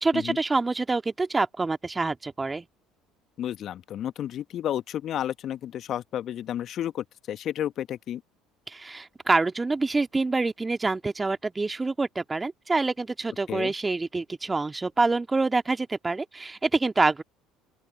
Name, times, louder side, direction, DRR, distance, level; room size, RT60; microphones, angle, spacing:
voice 1, 0.0-2.7 8.7-17.2, right 3 dB, 20° right, 1.9 m, -26 dB
voice 2, 3.4-8.2 13.5-13.7, left 11 dB, 50° left, 1.4 m, -32 dB
open air
figure-of-eight pair, 60°, 0 cm